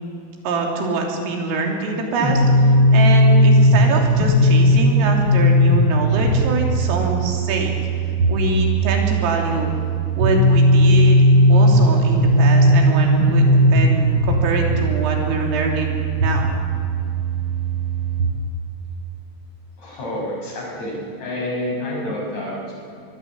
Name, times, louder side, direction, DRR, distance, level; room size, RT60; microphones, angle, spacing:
voice 1, 0.5-7.7 8.3-9.7 10.2-11.2 11.5-13.4 13.7-16.5, right 3 dB, 85° right, 1 dB, 5.7 m, -24 dB
sound 1, 2.2-18.2, equal, 25° right, 6.2 m, -17 dB
voice 2, 19.8-22.7, left 1 dB, 35° left, -2 dB, 7.2 m, -28 dB
23.0 x 21.5 x 8.5 m, 2.4 s
omnidirectional pair, 5.8 m